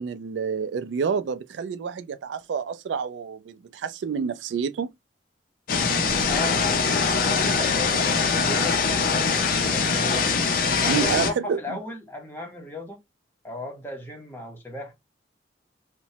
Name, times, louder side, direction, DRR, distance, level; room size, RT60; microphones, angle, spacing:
voice 1, 0.0-4.9 10.9-11.8, right 6 dB, 85° right, 0.3 m, -28 dB
sound 1, 5.7-11.3, left 5 dB, 50° left, 0.5 m, -23 dB
voice 2, 6.3-6.6 7.1-10.1 10.8-13.0 13.4-14.9, left 1 dB, 10° left, 0.7 m, -36 dB
2.9 x 2.1 x 2.7 m
head